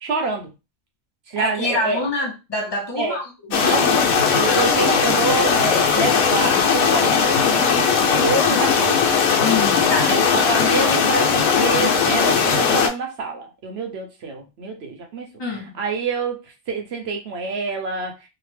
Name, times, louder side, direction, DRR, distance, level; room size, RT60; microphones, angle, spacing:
voice 1, 0.0-0.5 1.3-2.0 3.0-3.2 3.5-9.1 10.0-15.3 15.8-16.4 16.7-18.1, right 4 dB, 60° right, 3 dB, 0.7 m, -26 dB
voice 2, 1.3-3.5 4.4-4.7 9.4-10.3 15.4-15.8, left 3 dB, 45° left, -1 dB, 0.3 m, -26 dB
sound 1, 3.5-12.9, left 6 dB, 80° left, 1.1 m, -18 dB
2.8 x 2.0 x 3.1 m, 0.27 s
omnidirectional pair, 1.5 m